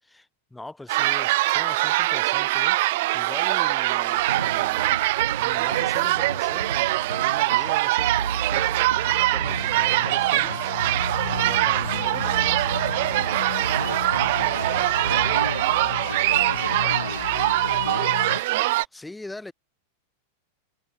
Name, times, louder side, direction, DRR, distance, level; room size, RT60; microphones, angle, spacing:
voice 1, 0.0-2.8 3.1-5.0 5.4-10.7 11.0-12.7 18.9-19.5, left 2 dB, 5° left, 6.5 m, -42 dB
sound 1, 0.9-18.8, right 19 dB, 50° right, 0.3 m, -23 dB
sound 2, 4.2-18.4, right 5 dB, 75° right, 2.9 m, -34 dB
sound 3, 8.5-18.4, left 12 dB, 60° left, 2.1 m, -35 dB
voice 2, 13.6-18.5, left 2 dB, 85° left, 3.6 m, -36 dB
figure-of-eight pair, 90°, 0 cm